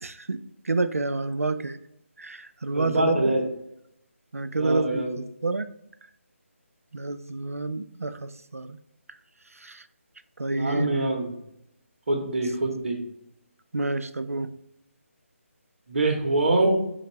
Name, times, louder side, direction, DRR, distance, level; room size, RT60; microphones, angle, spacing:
voice 1, 0.0-0.4 0.7-1.8 2.2-3.4 4.3-5.7 6.9-8.8 9.6-9.8 10.4-10.9 13.7-14.5, right 3 dB, 90° right, 11 dB, 0.4 m, -29 dB
voice 2, 2.7-3.4 4.5-5.2 10.5-11.3 12.1-13.0 15.9-16.8, right 2 dB, 55° right, 1 dB, 0.9 m, -24 dB
5.3 x 2.4 x 3.0 m, 0.79 s
figure-of-eight pair, 155°, 8 cm